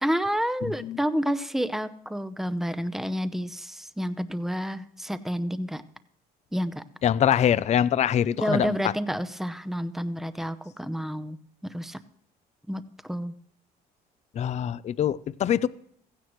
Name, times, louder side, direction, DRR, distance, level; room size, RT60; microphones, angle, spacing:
voice 1, 0.0-5.8 6.5-6.8 8.4-11.4 11.6-12.0 12.7-13.3, equal, ahead, 12 dB, 0.7 m, -29 dB
voice 2, 7.0-8.8 14.3-15.7, left 9 dB, 40° left, 17 dB, 0.5 m, -24 dB
16.0 x 15.5 x 3.1 m, 0.66 s
cardioid pair, 110°, 17 cm